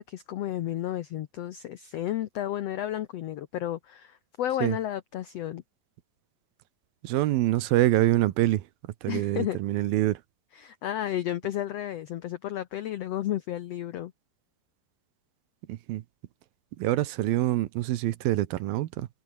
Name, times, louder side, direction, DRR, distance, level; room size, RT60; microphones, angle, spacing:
voice 1, 0.0-5.6 9.1-9.6 10.6-14.1, left 12 dB, 85° left, 1.4 m, -32 dB
voice 2, 7.0-8.7 9.0-10.2 15.7-16.0 16.8-19.1, right 15 dB, 90° right, 2.9 m, -25 dB
omnidirectional pair, 4.1 m